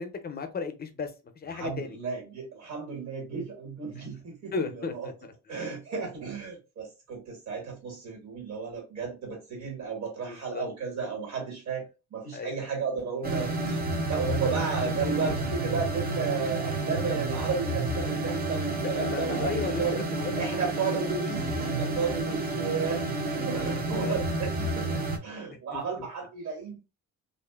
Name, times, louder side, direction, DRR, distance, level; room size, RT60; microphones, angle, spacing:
voice 1, 0.0-2.0 4.5-4.9 5.2-5.3 10.3-10.7 12.3-12.6 18.8-20.6 21.1-21.3 24.0-24.2 25.7-25.8, left 5 dB, 30° left, 0.6 m, -35 dB
voice 2, 1.5-5.1 5.5-11.8 12.1-13.8 14.1-20.0 20.4-24.9 25.2-26.8, right 5 dB, 60° right, 1.5 m, -33 dB
sound 1, 13.2-25.2, right 2 dB, 30° right, 0.6 m, -30 dB
2.6 x 2.5 x 2.3 m
cardioid pair, 90°, 30 cm